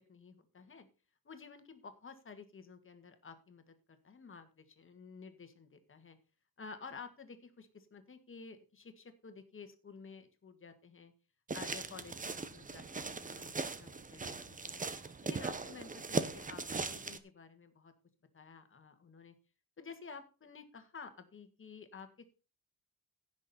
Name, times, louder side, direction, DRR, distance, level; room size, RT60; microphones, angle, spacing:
voice 1, 0.1-0.9 1.2-6.2 6.6-11.1 11.5-14.9 15.2-17.9 18.3-19.3 19.8-22.1, left 5 dB, 35° left, 8 dB, 1.7 m, -52 dB
sound 1, 11.5-17.2, right 4 dB, 20° right, 0.9 m, -39 dB
16.0 x 6.3 x 4.2 m, 0.33 s
cardioid pair, 135°, 37 cm